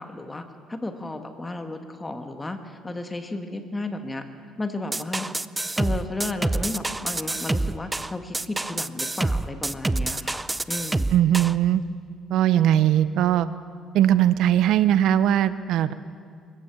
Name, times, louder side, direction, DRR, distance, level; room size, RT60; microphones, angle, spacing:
voice 1, 0.0-4.2 4.6-5.3 5.8-11.2, left 2 dB, 15° left, 6 dB, 1.7 m, -33 dB
sound 1, 4.9-11.6, right 2 dB, 10° right, 0.5 m, -27 dB
voice 2, 11.1-11.8 12.3-13.5 13.9-15.9, right 11 dB, 70° right, 14 dB, 0.7 m, -20 dB
23.0 x 17.0 x 7.2 m, 2.1 s
cardioid pair, 120°, 0 cm